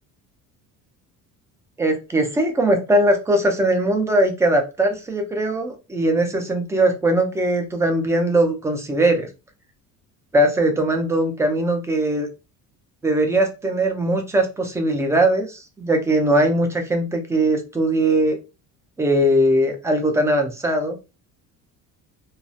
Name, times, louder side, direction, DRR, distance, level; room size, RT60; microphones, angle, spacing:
voice 1, 1.8-9.3 10.3-12.3 13.0-18.4 19.0-21.0, right 1 dB, 10° right, 4 dB, 0.4 m, -20 dB
2.3 x 2.0 x 2.6 m, 0.28 s
cardioid pair, 140°, 35 cm